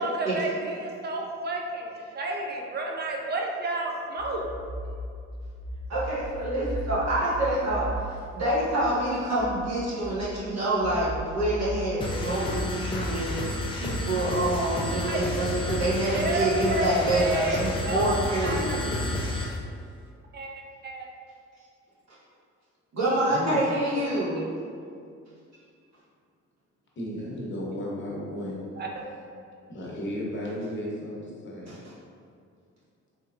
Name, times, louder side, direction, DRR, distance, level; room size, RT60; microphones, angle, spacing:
voice 1, 0.0-4.5 15.0-15.3 16.0-18.1 18.4-18.8 20.3-21.1 23.7-23.9 24.4-24.5 28.8-28.9, right 2 dB, 35° right, 0 dB, 0.5 m, -31 dB
sound 1, 4.2-15.1, right 1 dB, 65° left, 0.6 m, -38 dB
voice 2, 5.9-7.9 8.3-18.8 22.9-24.4 31.7-31.8, right 1 dB, 60° right, -9 dB, 1.4 m, -27 dB
sound 2, 12.0-19.6, left 1 dB, 15° left, 0.5 m, -31 dB
voice 3, 23.3-23.6 27.0-28.6 29.7-31.8, left 1 dB, 40° left, -4 dB, 0.9 m, -34 dB
3.3 x 3.0 x 2.4 m, 2.3 s
cardioid pair, 90°, 30 cm